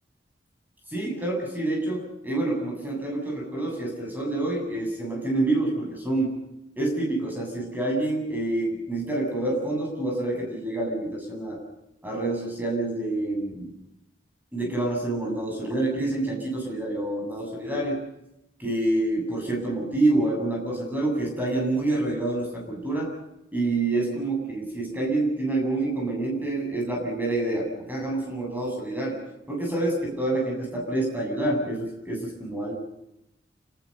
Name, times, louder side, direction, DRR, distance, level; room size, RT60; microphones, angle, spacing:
voice 1, 0.9-6.4 6.8-11.6 12.0-13.7 14.5-18.0 18.6-23.1 23.5-29.2 29.5-32.7, right 2 dB, 10° right, 0 dB, 7.9 m, -27 dB
28.5 x 19.5 x 6.9 m, 0.87 s
head